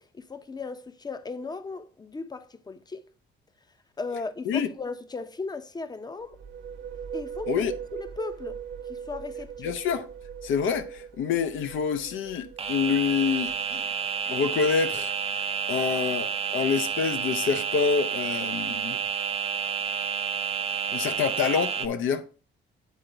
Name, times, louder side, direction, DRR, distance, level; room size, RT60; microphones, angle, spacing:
voice 1, 0.0-3.0 4.0-6.4 7.1-7.6 7.9-8.6 8.9-9.7, left 4 dB, 20° left, 0.7 m, -37 dB
sound 1, 6.2-13.8, right 7 dB, 70° right, 0.8 m, -40 dB
voice 2, 9.6-10.1 10.4-13.8 14.3-15.4 15.7-19.0 20.9-22.2, left 6 dB, 80° left, 0.8 m, -27 dB
sound 2, 12.6-21.9, right 7 dB, 30° right, 0.5 m, -30 dB
8.3 x 3.9 x 4.5 m
cardioid pair, 90°, 20 cm